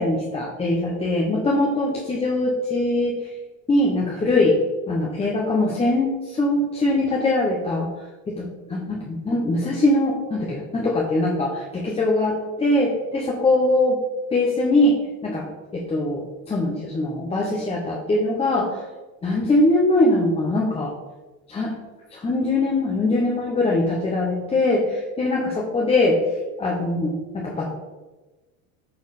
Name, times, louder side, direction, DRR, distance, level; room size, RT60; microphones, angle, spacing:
voice 1, 0.0-3.3 3.7-4.6 4.9-7.9 8.7-14.0 14.3-15.0 15.2-15.5 15.7-18.8 19.2-20.9 21.5-21.7 22.1-26.2 26.6-27.6, left 2 dB, 15° left, -2 dB, 0.9 m, -22 dB
9.3 x 4.3 x 4.1 m, 1.2 s
supercardioid pair, 140°, 42 cm